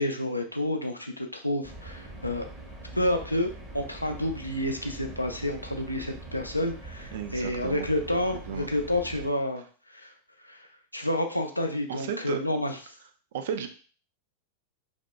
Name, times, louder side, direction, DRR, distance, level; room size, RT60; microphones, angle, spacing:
voice 1, 0.0-2.5 2.9-9.6 9.9-10.1 10.4-10.7 10.9-12.8, left 1 dB, 85° left, 4 dB, 0.3 m, -29 dB
sound 1, 1.6-9.3, right 2 dB, 20° right, 0.6 m, -43 dB
voice 2, 7.1-7.9 8.5-8.7 11.9-12.4 13.3-13.7, right 8 dB, 55° right, 8 dB, 0.3 m, -33 dB
2.7 x 2.1 x 2.2 m, 0.40 s
figure-of-eight pair, 90°, 0 cm